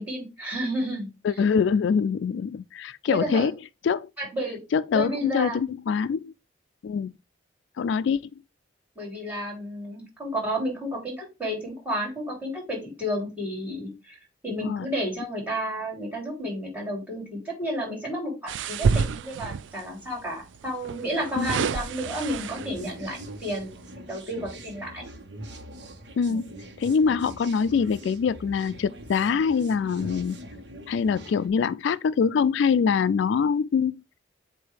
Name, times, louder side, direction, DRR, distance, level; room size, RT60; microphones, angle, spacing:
voice 1, 0.0-1.1 3.1-3.5 4.2-4.6 4.9-5.6 8.9-14.2 14.4-25.1, equal, 10° right, 3.2 m, -31 dB
voice 2, 1.2-3.5 3.8-4.1 4.7-6.3 6.8-7.1 7.8-8.2 14.5-14.9 21.4-21.5 26.2-26.5 26.8-30.4 30.9-34.0, left 6 dB, 75° left, 0.3 m, -24 dB
sound 1, 18.5-19.8 20.8-22.9 23.4-23.6, right 5 dB, 90° right, 0.4 m, -28 dB
sound 2, 21.2-31.5, right 1 dB, 70° right, 1.2 m, -43 dB
7.9 x 2.7 x 5.0 m
head